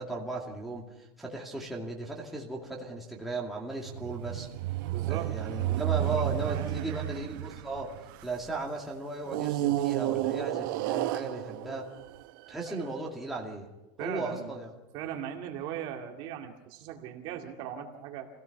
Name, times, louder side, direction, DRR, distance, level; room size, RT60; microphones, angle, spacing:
voice 1, 0.0-4.5 5.1-7.9 8.2-11.9 12.5-13.7 14.0-14.7, right 2 dB, ahead, -3 dB, 2.4 m, -36 dB
sound 1, 3.8-8.5 9.3-12.7, right 15 dB, 65° right, 0.8 m, -32 dB
voice 2, 4.9-5.3 6.0-6.9 12.7-13.0 14.0-14.5 14.9-18.3, right 10 dB, 45° right, 2 dB, 2.2 m, -39 dB
26.0 x 17.0 x 5.8 m, 0.97 s
supercardioid pair, 170°, 12 cm